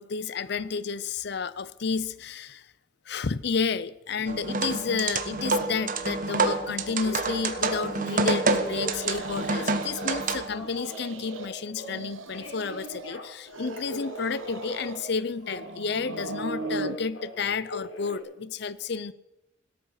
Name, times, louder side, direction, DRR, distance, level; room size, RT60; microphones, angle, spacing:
voice 1, 0.0-2.7 3.1-19.1, left 5 dB, 55° left, 17 dB, 0.6 m, -31 dB
sound 1, 4.3-10.6, right 3 dB, 45° right, 1.4 m, -28 dB
Telephone, 5.7-8.2 8.6-10.1 10.4-12.0 12.3-15.7 16.0-18.2, left 1 dB, 80° left, 3.8 m, -40 dB
sound 2, 8.6-10.3 10.6-11.5 11.7-13.1 13.5-15.1 15.4-17.0, right 3 dB, 85° right, 1.3 m, -39 dB
17.5 x 12.5 x 6.6 m, 0.91 s
head